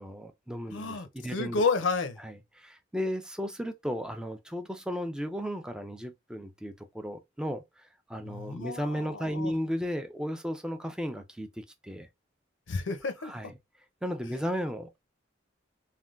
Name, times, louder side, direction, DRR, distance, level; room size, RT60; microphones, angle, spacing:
voice 1, 0.0-1.6 2.2-12.1 13.2-13.5 14.0-15.0, equal, 5° right, 0.4 m, -35 dB
voice 2, 0.7-2.2 8.2-9.5 12.7-13.4, left 4 dB, 90° left, 0.6 m, -31 dB
3.3 x 2.2 x 2.4 m
head